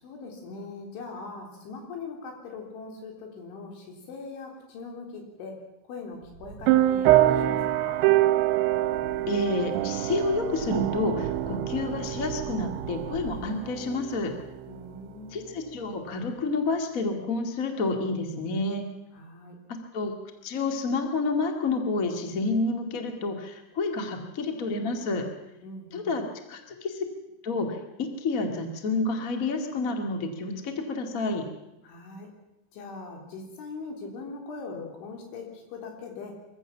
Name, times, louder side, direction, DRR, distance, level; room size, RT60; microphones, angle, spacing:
voice 1, 0.0-5.6 5.9-8.0 14.7-15.5 19.1-19.6 25.6-26.2 31.8-32.3 32.7-36.4, left 4 dB, 75° left, 2 dB, 5.8 m, -41 dB
sound 1, 6.1-13.4, right 5 dB, 55° right, 2.0 m, -42 dB
sound 2, 6.7-14.8, right 14 dB, 80° right, 2.9 m, -25 dB
voice 2, 9.3-14.3 15.3-18.9 19.9-20.1 20.4-25.2 25.9-26.2 26.5-27.0 27.4-31.4, left 3 dB, 50° left, 4 dB, 0.9 m, -29 dB
24.0 x 15.5 x 7.3 m, 0.93 s
omnidirectional pair, 5.6 m